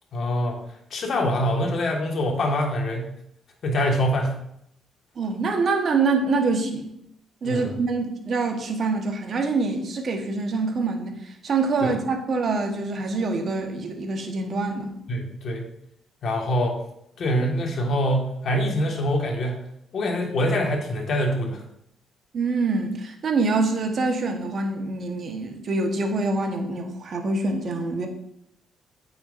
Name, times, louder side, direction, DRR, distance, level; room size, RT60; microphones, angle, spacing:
voice 1, 0.1-0.6 0.9-3.1 3.6-4.4 7.4-7.7 11.8-11.9 15.1-15.7 16.2-16.8 17.2-19.7 19.9-21.6, equal, 60° left, 1 dB, 1.7 m, -24 dB
voice 2, 5.2-6.9 7.4-14.9 22.3-28.1, right 3 dB, 55° right, 4 dB, 1.2 m, -25 dB
8.8 x 5.8 x 2.6 m, 0.75 s
cardioid pair, 90°, 0 cm